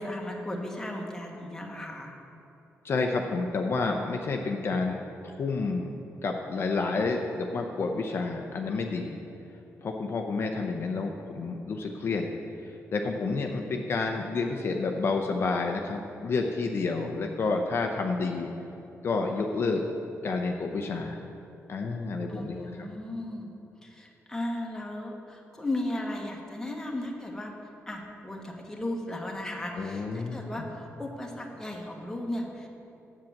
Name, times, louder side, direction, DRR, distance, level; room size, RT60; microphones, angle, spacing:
voice 1, 0.0-2.1 22.3-23.5 23.8-27.5 27.9-32.7, left 1 dB, 10° left, 0 dB, 1.3 m, -35 dB
voice 2, 2.8-6.0 6.2-9.2 9.8-12.3 12.7-18.5 19.0-19.8 20.2-21.2 21.7-22.9 29.8-30.7, left 3 dB, 50° left, 2 dB, 0.6 m, -30 dB
7.8 x 7.4 x 7.2 m, 2.9 s
wide cardioid pair, 130°, 5 cm